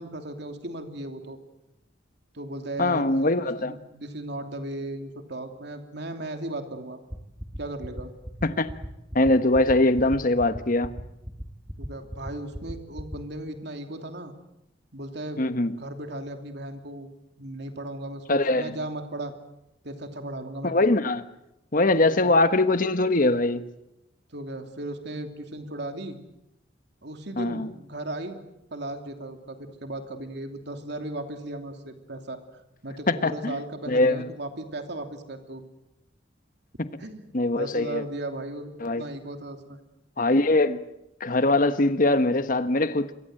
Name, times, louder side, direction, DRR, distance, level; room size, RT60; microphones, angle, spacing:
voice 1, 0.0-1.4 2.3-3.3 3.7-7.0 7.6-8.1 11.8-14.3 14.9-15.4 15.8-17.1 17.4-19.3 19.8-20.7 22.1-22.3 24.3-26.2 27.0-28.4 28.7-32.4 32.8-35.6 37.0-37.3 37.5-38.7 39.0-39.8, right 1 dB, 65° right, 2.9 m, -36 dB
voice 2, 2.8-3.7 8.4-8.7 9.1-10.9 15.4-15.7 18.3-18.7 20.6-21.2 21.7-23.6 27.4-27.7 33.1-33.6 33.9-34.3 37.3-38.0 38.8-39.0 40.2-40.8 41.2-43.1, left 2 dB, 45° left, 1.3 m, -22 dB
sound 1, 7.1-13.2, equal, 5° right, 2.3 m, -35 dB
26.5 x 23.0 x 7.8 m
head